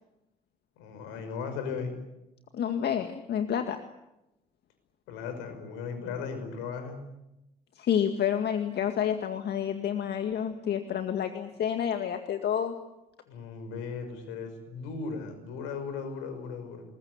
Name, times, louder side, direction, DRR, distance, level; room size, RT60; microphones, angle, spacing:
voice 1, 0.8-2.0 5.1-7.0 13.3-16.8, left 5 dB, 75° left, 8 dB, 5.7 m, -37 dB
voice 2, 2.5-3.8 7.8-12.7, left 9 dB, 55° left, 7 dB, 2.0 m, -29 dB
27.5 x 21.0 x 8.2 m, 0.92 s
hypercardioid pair, 50°, 20 cm